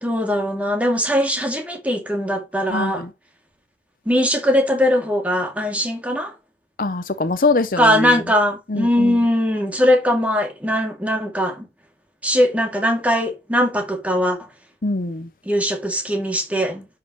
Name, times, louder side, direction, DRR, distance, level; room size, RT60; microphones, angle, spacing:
voice 1, 0.0-3.1 4.1-6.3 7.8-11.7 12.2-14.5 15.5-16.9, equal, 10° right, 2.5 m, -20 dB
voice 2, 2.7-3.1 6.8-8.2 8.7-9.2 14.8-15.3, left 3 dB, 50° left, 0.7 m, -23 dB
10.5 x 6.5 x 3.1 m
head